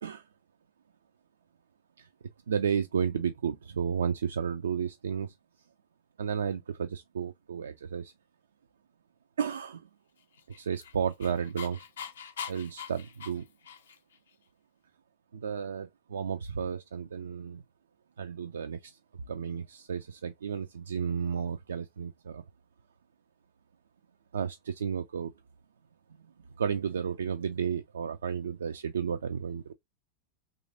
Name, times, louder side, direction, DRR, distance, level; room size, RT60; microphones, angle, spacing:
voice 1, 2.5-5.3 6.2-8.1 9.4-9.9 10.6-11.8 12.5-13.5 15.3-17.6 18.2-22.4 24.3-25.3 26.1-26.3 26.6-29.7, right 7 dB, 65° right, 0.3 m, -33 dB
Dog, 10.3-14.2, left 8 dB, 65° left, 0.5 m, -43 dB
3.1 x 2.4 x 3.7 m
figure-of-eight pair, 90°, 0 cm